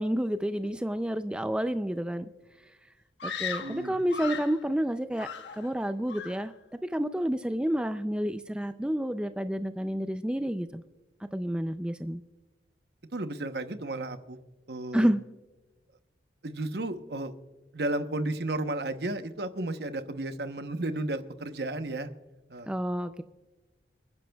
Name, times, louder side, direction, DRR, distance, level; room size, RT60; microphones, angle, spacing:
voice 1, 0.0-2.3 3.2-6.5 6.8-10.8 11.3-12.2 14.9-15.2 22.7-23.2, equal, 5° right, 10 dB, 0.3 m, -29 dB
Screaming, 3.2-4.6 5.1-5.8 6.1-6.5, left 6 dB, 80° left, 1.0 m, -37 dB
voice 2, 3.6-4.0 13.1-14.4 14.7-15.1 16.4-17.3 17.7-22.1 22.5-22.7, right 2 dB, 60° right, 9 dB, 0.9 m, -33 dB
29.0 x 10.5 x 2.3 m, 1.2 s
head